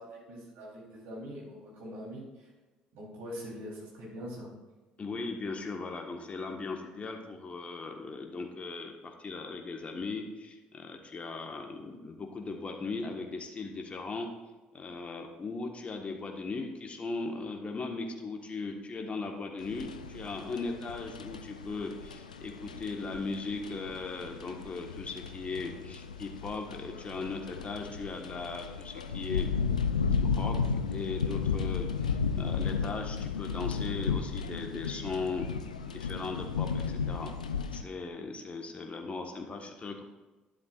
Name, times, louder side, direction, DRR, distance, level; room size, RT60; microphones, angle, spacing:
voice 1, 0.0-2.5 2.9-4.5, equal, 65° right, -4 dB, 3.6 m, -43 dB
voice 2, 5.0-14.3 14.7-29.5 30.3-35.5 35.9-37.3 37.7-40.0, left 3 dB, 35° left, 3 dB, 1.5 m, -38 dB
sound 1, 19.6-37.8, left 5 dB, 85° left, 0.4 m, -34 dB
12.5 x 11.5 x 2.5 m, 1.2 s
figure-of-eight pair, 50°, 4 cm